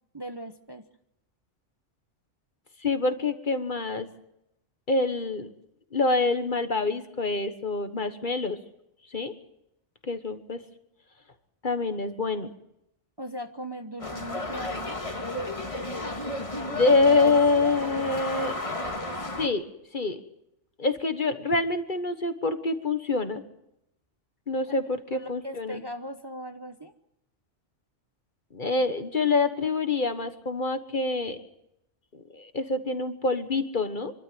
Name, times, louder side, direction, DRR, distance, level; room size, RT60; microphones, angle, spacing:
voice 1, 0.1-0.8 13.2-15.0 16.7-17.5 25.1-26.9, equal, 20° right, 7 dB, 1.0 m, -39 dB
voice 2, 2.8-4.1 4.9-5.5 5.9-8.6 9.1-9.3 10.0-10.6 11.6-12.5 16.7-18.5 19.4-19.6 19.9-20.2 20.8-23.4 24.5-25.8 28.5-31.4 32.3-34.1, left 3 dB, 45° left, 8 dB, 1.5 m, -26 dB
sound 1, 14.0-19.5, left 2 dB, 30° left, 1.9 m, -33 dB
26.5 x 13.0 x 9.3 m, 0.84 s
omnidirectional pair, 1.2 m